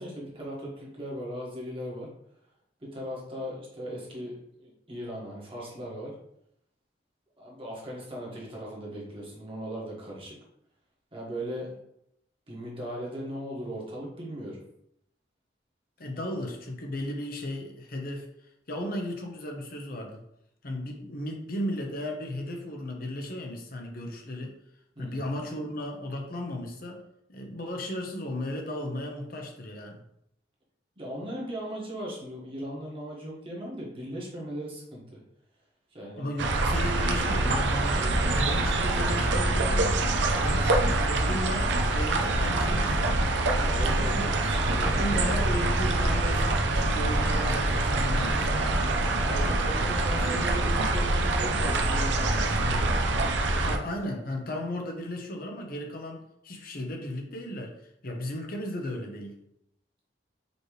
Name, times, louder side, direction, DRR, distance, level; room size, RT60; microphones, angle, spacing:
voice 1, 0.0-2.1 2.8-6.1 7.4-10.3 11.1-11.8 12.5-14.6 24.9-25.3 31.0-35.2 35.9-36.3 43.6-45.2 49.2-52.9, equal, 30° right, -4 dB, 1.5 m, -38 dB
voice 2, 16.0-18.3 18.7-20.2 20.6-24.6 25.0-27.0 27.3-30.0 36.2-40.1 40.4-43.3 44.2-44.3 44.8-48.8 53.6-57.7 58.0-59.3, left 1 dB, 55° left, 2 dB, 0.9 m, -35 dB
sound 1, 36.4-53.8, right 2 dB, 90° right, 0.6 m, -25 dB
5.2 x 3.2 x 3.2 m, 0.76 s
head